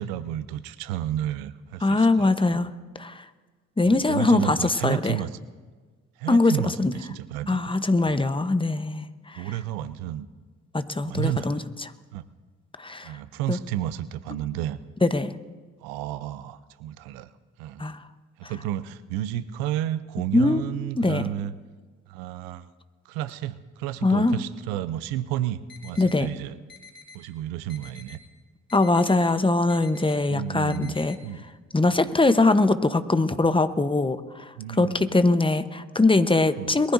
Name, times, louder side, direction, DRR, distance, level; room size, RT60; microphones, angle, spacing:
voice 1, 0.0-2.7 3.8-5.3 6.2-8.2 9.4-10.3 11.0-11.6 12.1-12.2 13.0-14.8 15.8-17.3 17.6-17.8 18.4-21.5 22.1-22.7 23.1-26.6 27.1-28.2 30.3-31.5 34.6-35.2 36.6-36.8, right 12 dB, 80° right, 15 dB, 0.7 m, -32 dB
voice 2, 1.8-2.7 3.0-3.2 3.8-5.2 6.3-6.9 7.5-9.4 10.7-11.6 12.8-13.1 13.5-13.6 15.0-15.3 17.8-18.0 18.4-18.5 20.3-20.6 21.0-21.2 24.0-24.4 26.0-26.3 28.7-31.1 31.7-36.9, left 2 dB, 15° left, 11 dB, 1.0 m, -22 dB
sound 1, 25.7-26.2 26.7-27.2 27.7-28.2 28.7-29.2 29.7-30.2 30.7-31.2, left 4 dB, 30° left, 3.2 m, -47 dB
22.5 x 14.5 x 2.7 m, 1.4 s
hypercardioid pair, 40°, 36 cm